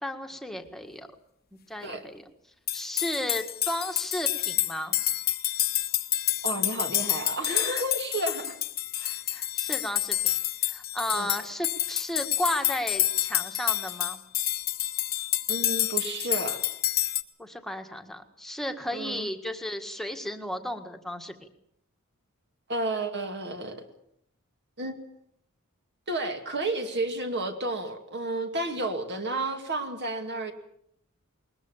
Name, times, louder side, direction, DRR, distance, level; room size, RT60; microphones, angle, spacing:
voice 1, 0.0-1.1 1.7-2.2 2.7-5.0 9.3-14.2 17.4-21.5, equal, ahead, 5 dB, 1.7 m, -34 dB
sound 1, 2.7-17.2, left 13 dB, 45° left, 1.1 m, -28 dB
voice 2, 6.4-8.5 9.0-9.2 11.1-11.3 15.5-16.6 18.9-19.3 22.7-23.8 24.8-25.1 26.1-30.5, right 2 dB, 50° right, 5 dB, 2.5 m, -31 dB
21.0 x 20.5 x 7.3 m, 0.70 s
head